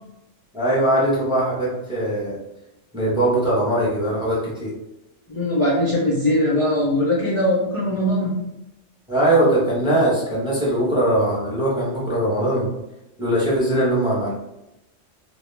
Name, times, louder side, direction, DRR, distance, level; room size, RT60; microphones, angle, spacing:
voice 1, 0.5-2.4 2.9-4.7 9.1-12.7 13.2-14.3, right 1 dB, 5° right, -6 dB, 0.6 m, -21 dB
voice 2, 5.3-8.4, left 1 dB, 55° left, -5 dB, 0.3 m, -20 dB
2.2 x 2.1 x 3.1 m, 0.89 s
omnidirectional pair, 1.3 m